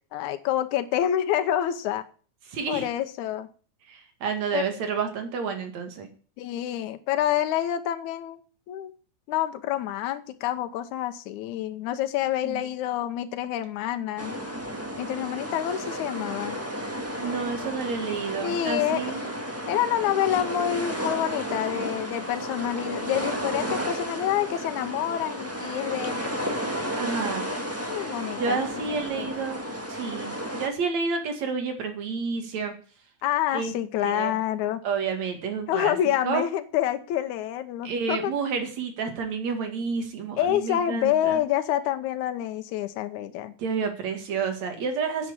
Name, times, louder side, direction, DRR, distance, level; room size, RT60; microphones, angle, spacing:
voice 1, 0.1-2.0 2.7-3.5 4.5-4.7 6.4-8.4 8.7-8.9 9.3-14.4 15.0-16.6 18.4-19.0 19.7-26.5 27.9-28.6 28.9-29.3 33.2-34.8 35.7-38.3 40.4-43.6, left 11 dB, 80° left, 9 dB, 2.3 m, -27 dB
voice 2, 2.5-2.9 3.9-6.1 12.4-12.7 17.2-19.3 27.0-27.5 28.4-29.6 29.9-32.7 33.5-33.7 34.0-34.3 34.8-35.9 36.2-36.5 37.8-41.4 43.6-45.3, right 5 dB, 65° right, 5 dB, 3.2 m, -30 dB
sound 1, 14.2-30.7, equal, 10° right, 0.7 m, -32 dB
10.0 x 7.7 x 8.6 m, 0.41 s
omnidirectional pair, 3.5 m